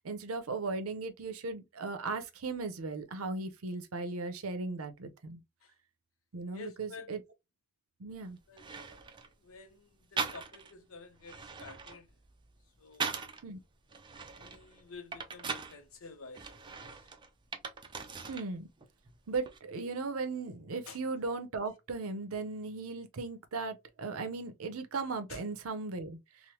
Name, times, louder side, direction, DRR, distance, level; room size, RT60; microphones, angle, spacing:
voice 1, 0.0-5.4 6.3-7.2 8.0-8.4 13.4-13.6 18.3-18.7 19.3-26.2, right 3 dB, 85° right, 0.6 m, -37 dB
voice 2, 6.5-7.1 8.5-8.7 9.4-12.1 12.8-13.3 14.4-16.9 20.9-21.0 25.3-25.4, left 4 dB, 75° left, 0.7 m, -50 dB
sound 1, 8.1-8.2 8.6-9.3 10.2-10.8 11.2-13.4 13.9-15.8 16.3-18.5 18.8-19.6, right 5 dB, 20° right, 0.4 m, -40 dB
3.1 x 2.1 x 2.9 m
head